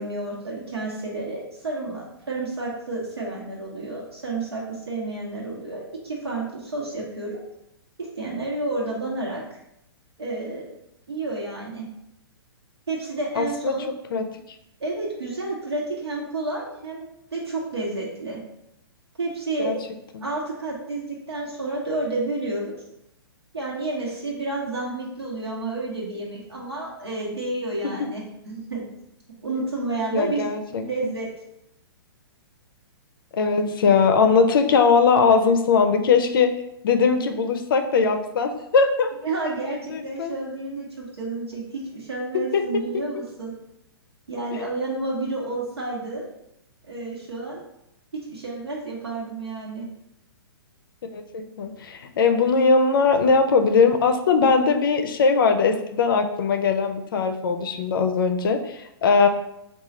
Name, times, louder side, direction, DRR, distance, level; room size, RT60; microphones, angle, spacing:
voice 1, 0.0-7.4 8.0-9.6 10.2-10.7 11.1-11.9 12.9-13.9 14.8-17.0 17.3-18.4 19.2-19.8 20.2-22.8 23.5-28.9 29.4-30.5 30.8-31.3 35.3-35.5 39.2-43.5 44.3-46.2 46.9-47.6 48.2-49.9, right 2 dB, 80° right, -4 dB, 1.0 m, -30 dB
voice 2, 13.4-13.8 14.1-14.2 19.6-19.8 20.1-20.2 30.1-31.1 33.4-36.5 36.8-39.1 39.6-40.3 42.5-42.6 44.5-44.7 51.1-59.3, left 5 dB, 60° left, 6 dB, 0.4 m, -20 dB
3.8 x 2.3 x 4.2 m, 0.81 s
figure-of-eight pair, 120°, 13 cm